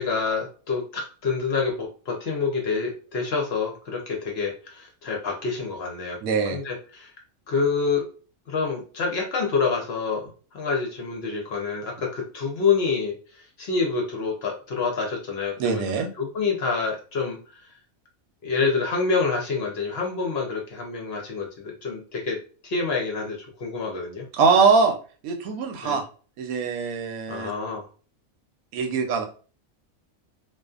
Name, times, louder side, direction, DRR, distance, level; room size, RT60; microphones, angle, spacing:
voice 1, 0.0-6.2 6.5-7.1 7.5-8.0 8.5-15.8 16.2-17.7 18.4-22.4 22.6-24.2 25.8-26.0 27.3-27.8, left 4 dB, 60° left, 0 dB, 0.7 m, -27 dB
voice 2, 6.2-6.6 15.6-16.1 24.3-24.9 25.2-26.0 26.4-27.5 28.7-29.2, right 5 dB, 85° right, 5 dB, 1.0 m, -22 dB
2.5 x 2.3 x 2.3 m, 0.38 s
omnidirectional pair, 1.4 m